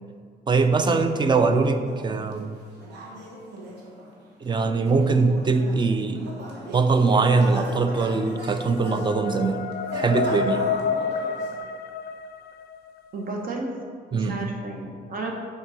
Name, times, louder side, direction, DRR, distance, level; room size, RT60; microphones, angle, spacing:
voice 1, 0.5-2.6 4.4-6.3 6.7-10.7 14.1-14.5, right 4 dB, 25° right, 8 dB, 0.5 m, -22 dB
sound 1, 1.9-11.6, right 1 dB, 85° right, 1.2 m, -37 dB
sound 2, 7.9-12.9, left 6 dB, 65° left, 0.4 m, -29 dB
voice 2, 13.1-13.7 14.1-15.3, right 2 dB, 55° right, 1 dB, 1.0 m, -33 dB
6.3 x 4.5 x 4.8 m, 2.1 s
cardioid pair, 105°, 17 cm